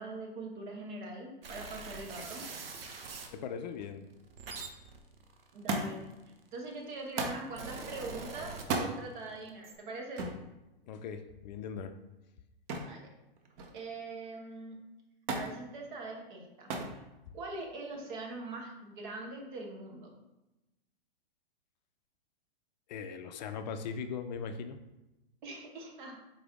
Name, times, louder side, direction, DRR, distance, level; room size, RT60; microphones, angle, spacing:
voice 1, 0.0-2.4 5.5-6.1 6.5-10.3 12.8-13.1 13.7-14.8 15.3-16.7 17.3-20.1 25.4-26.2, right 2 dB, 55° right, 1 dB, 1.2 m, -42 dB
sound 1, 1.4-3.3 4.1-6.4 7.2-9.1 9.4-9.7, right 4 dB, 70° right, 0.8 m, -44 dB
voice 2, 3.3-4.1 4.6-4.7 10.9-11.9 22.9-24.8, left 6 dB, 50° left, 8 dB, 0.4 m, -40 dB
Thump thud, 5.7-6.2 7.2-7.5 8.6-8.9 10.2-10.4 12.7-13.0 13.4-13.9 15.3-15.6 16.7-17.0 17.9-18.4 19.4-19.5, right 3 dB, 35° right, 0.6 m, -34 dB
4.2 x 3.3 x 3.6 m, 0.97 s
hypercardioid pair, 110°, 29 cm